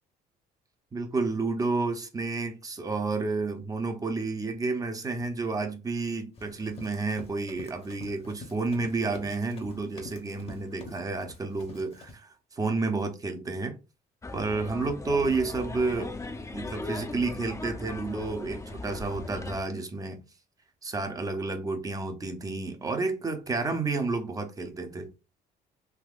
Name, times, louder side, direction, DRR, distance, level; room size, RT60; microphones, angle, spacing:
voice 1, 0.9-13.8 14.3-16.2 16.5-20.2 20.8-25.1, right 3 dB, 20° right, 0.7 m, -30 dB
Run, 6.3-12.2, left 3 dB, 35° left, 0.9 m, -47 dB
sound 1, 14.2-19.6, left 2 dB, 20° left, 0.6 m, -38 dB
3.5 x 2.8 x 2.4 m
cardioid pair, 110°, 17 cm